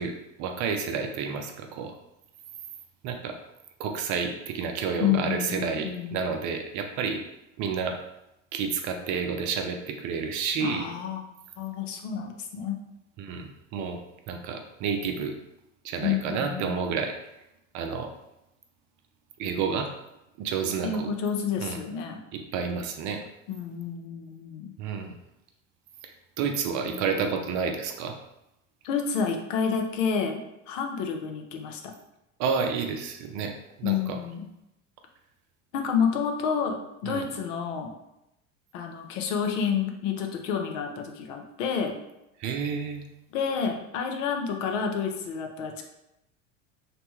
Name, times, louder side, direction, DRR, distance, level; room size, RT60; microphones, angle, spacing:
voice 1, 0.0-1.9 3.0-3.3 3.8-7.2 7.6-8.0 8.5-10.9 13.2-14.0 14.3-15.4 15.8-17.1 17.7-18.1 19.4-19.9 20.4-21.1 21.6-21.8 22.3-23.2 24.8-25.1 26.0-26.1 26.4-28.2 32.4-34.2 37.0-37.3 42.4-43.0, right 6 dB, 50° right, 5 dB, 0.5 m, -30 dB
voice 2, 5.0-6.2 10.6-11.2 11.6-12.8 16.0-16.9 20.8-22.2 23.5-24.7 26.8-27.3 28.8-31.9 33.8-34.5 35.7-37.9 38.7-41.9 43.3-45.8, left 6 dB, 70° left, 3 dB, 0.6 m, -29 dB
2.9 x 2.1 x 3.0 m, 0.87 s
hypercardioid pair, 85°, 39 cm